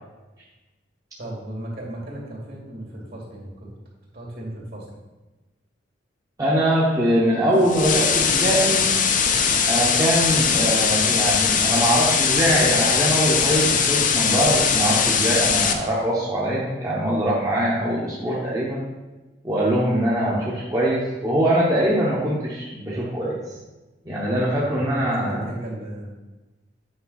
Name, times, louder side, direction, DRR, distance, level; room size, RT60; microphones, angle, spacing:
voice 1, 1.2-3.8 4.1-4.9 20.2-20.4 24.6-24.8 25.0-26.2, right 1 dB, 55° right, -3 dB, 2.4 m, -35 dB
voice 2, 6.4-8.9 9.7-18.8 19.4-23.4 24.0-25.5, right 1 dB, 20° right, -6 dB, 1.0 m, -22 dB
sound 1, 7.6-15.7, left 6 dB, 45° left, 0.6 m, -20 dB
8.7 x 5.2 x 4.0 m, 1.1 s
head